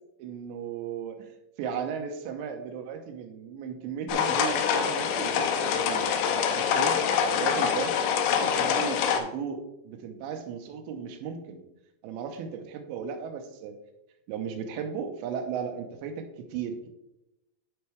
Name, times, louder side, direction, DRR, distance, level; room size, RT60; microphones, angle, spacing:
voice 1, 0.2-6.1 6.6-7.0 7.3-7.9 8.4-11.6 12.0-13.8 14.3-16.9, right 7 dB, 90° right, 5 dB, 3.1 m, -36 dB
sound 1, 4.1-9.2, left 7 dB, 80° left, 2.5 m, -25 dB
11.5 x 4.5 x 3.3 m, 0.91 s
omnidirectional pair, 5.2 m